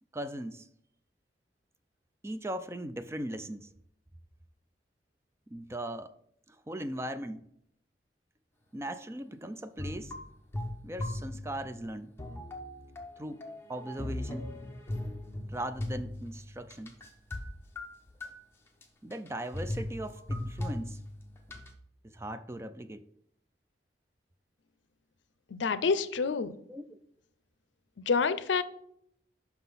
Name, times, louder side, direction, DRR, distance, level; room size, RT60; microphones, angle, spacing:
voice 1, 0.1-0.7 2.2-3.7 5.5-6.1 6.5-7.5 8.7-10.1 10.8-12.1 13.2-13.4 13.7-14.5 15.5-17.0 19.0-21.0 22.0-23.0 26.7-27.0, right 1 dB, 15° right, 0.4 m, -39 dB
sound 1, 9.8-11.9 12.2-17.5 17.8-18.3 18.8-18.9 19.1-19.3 19.5-21.7, left 1 dB, 15° left, 0.9 m, -38 dB
voice 2, 25.5-26.5 28.1-28.6, left 5 dB, 80° left, 0.5 m, -27 dB
5.9 x 5.8 x 5.5 m
head